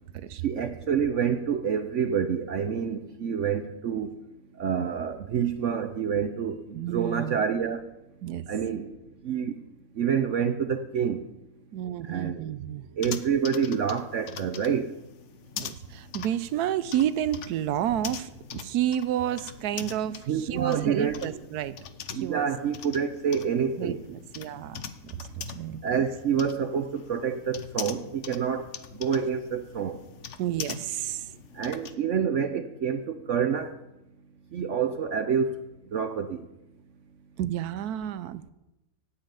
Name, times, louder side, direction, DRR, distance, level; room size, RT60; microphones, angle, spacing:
voice 1, 0.4-4.1 4.6-7.8 8.5-8.9 9.2-9.6 10.0-11.2 12.1-12.4 13.0-14.9 20.3-21.4 22.1-24.0 25.8-28.7 29.0-30.0 31.5-33.7 34.5-35.5 35.9-36.4, right 7 dB, 60° right, 9 dB, 0.9 m, -27 dB
voice 2, 6.7-7.4 8.2-8.5 11.7-12.9 15.6-21.8 22.2-22.5 23.8-25.2 25.5-25.8 30.4-31.3 37.4-38.5, right 11 dB, 80° right, 14 dB, 1.2 m, -30 dB
sound 1, 13.0-32.0, left 8 dB, 55° left, 1.0 m, -43 dB
12.5 x 7.4 x 8.9 m, 0.95 s
omnidirectional pair, 1.6 m